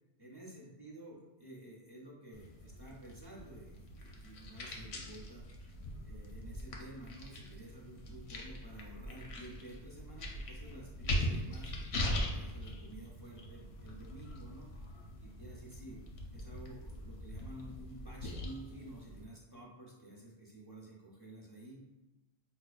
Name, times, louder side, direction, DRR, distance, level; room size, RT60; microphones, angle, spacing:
voice 1, 0.2-5.5 6.0-14.7 15.2-16.0 16.3-21.8, right 1 dB, 30° right, -4 dB, 0.6 m, -51 dB
sound 1, 2.3-19.2, left 1 dB, 90° left, 0.9 m, -41 dB
5.6 x 2.1 x 2.3 m, 1.1 s
omnidirectional pair, 1.1 m